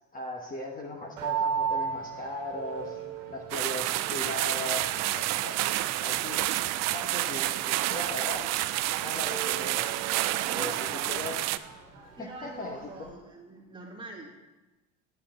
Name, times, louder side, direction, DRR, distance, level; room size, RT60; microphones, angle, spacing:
voice 1, 0.1-3.0 3.3-5.6 6.0-6.5 6.9-8.5 9.0-9.9 10.5-11.4 12.2-12.8, left 2 dB, 20° left, -1 dB, 1.2 m, -38 dB
sound 1, 1.2-13.1, right 7 dB, 85° right, 1.5 m, -38 dB
sound 2, 3.5-11.6, right 15 dB, 45° right, 0.4 m, -29 dB
voice 2, 10.4-11.5 12.1-14.4, right 2 dB, 15° right, -2 dB, 2.3 m, -45 dB
8.3 x 7.8 x 4.4 m, 1.1 s
hypercardioid pair, 90°, 38 cm